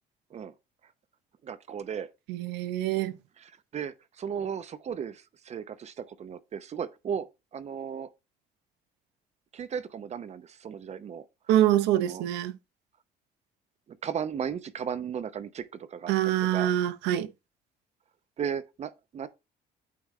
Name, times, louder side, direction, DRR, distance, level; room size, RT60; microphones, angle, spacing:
voice 1, 1.4-2.1 3.4-7.3 7.5-8.1 9.5-11.2 11.9-12.2 13.9-16.7 18.4-19.3, right 7 dB, 40° right, 0.7 m, -36 dB
voice 2, 2.3-3.1 11.5-12.5 16.1-17.3, right 12 dB, 90° right, 0.7 m, -25 dB
8.5 x 3.5 x 4.2 m
cardioid pair, 110°, 17 cm